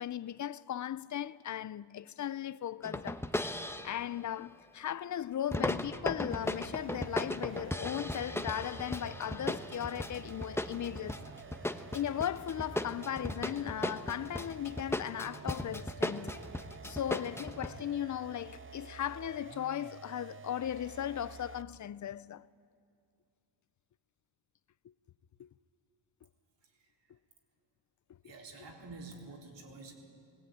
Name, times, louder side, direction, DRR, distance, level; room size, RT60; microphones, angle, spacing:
voice 1, 0.0-3.3 3.8-11.3 11.7-16.4 16.8-22.5 25.4-25.5, left 10 dB, 40° left, 0.5 m, -37 dB
sound 1, 2.8-4.0 5.5-17.7, left 1 dB, 5° left, 1.0 m, -36 dB
sound 2, 6.3-21.8, right 6 dB, 30° right, 0.6 m, -50 dB
voice 2, 26.6-26.9 28.2-29.9, right 3 dB, 65° right, 4.2 m, -49 dB
20.0 x 17.5 x 9.4 m
cardioid pair, 80°, 45 cm